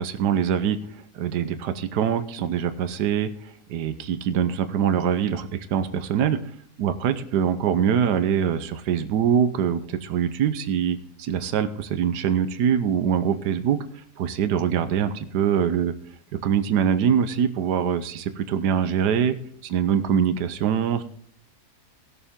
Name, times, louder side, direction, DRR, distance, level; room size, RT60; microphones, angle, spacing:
voice 1, 0.0-6.4 6.8-15.9 16.4-19.3 19.6-21.0, right 8 dB, 85° right, 11 dB, 1.4 m, -24 dB
18.5 x 6.9 x 3.6 m, 0.63 s
omnidirectional pair, 1.7 m